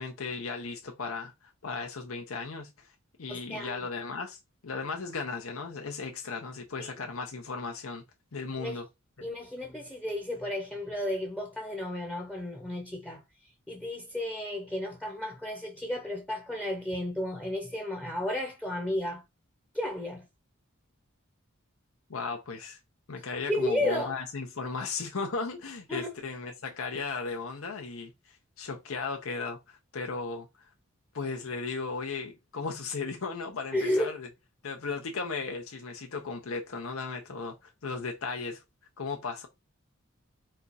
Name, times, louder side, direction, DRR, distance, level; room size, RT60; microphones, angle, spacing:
voice 1, 0.0-2.9 3.2-8.0 8.3-8.9 9.2-9.3 22.1-22.8 23.1-30.5 31.1-34.3 34.6-38.6 39.0-39.5, left 4 dB, 85° left, 0.8 m, -36 dB
voice 2, 3.3-3.8 6.8-6.9 8.6-8.8 9.2-13.2 13.7-19.2 19.7-20.2 23.5-24.2 25.9-26.2 33.7-34.1, left 1 dB, 5° left, 0.7 m, -33 dB
4.3 x 2.4 x 4.0 m
head